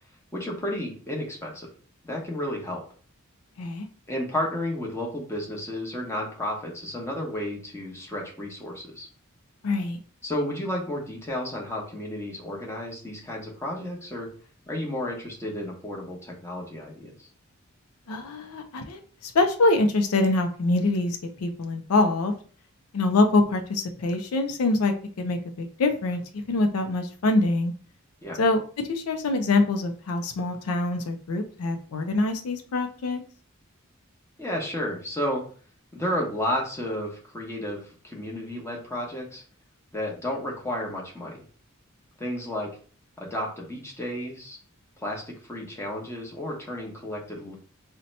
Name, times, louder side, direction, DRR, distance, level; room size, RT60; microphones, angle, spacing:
voice 1, 0.3-1.7 2.0-2.8 4.1-9.1 10.2-14.3 14.7-17.3 28.2-28.4 34.4-35.4 35.9-39.4 39.9-41.4 42.2-42.7 43.2-44.6 45.0-47.5, left 1 dB, 10° left, -2 dB, 0.8 m, -32 dB
voice 2, 9.6-10.0 18.1-22.3 22.9-27.7 28.4-28.6 28.9-33.2, left 2 dB, 85° left, 5 dB, 0.4 m, -24 dB
2.7 x 2.1 x 4.0 m, 0.42 s
head